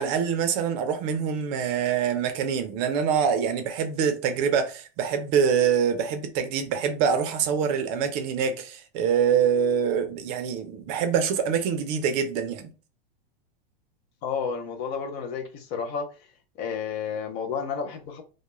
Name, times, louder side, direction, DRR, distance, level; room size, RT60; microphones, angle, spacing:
voice 1, 0.0-12.7, right 7 dB, 45° right, 0.5 m, -25 dB
voice 2, 14.2-16.1 16.6-18.2, left 6 dB, 35° left, 0.4 m, -31 dB
2.2 x 2.1 x 3.0 m
supercardioid pair, 135°, 29 cm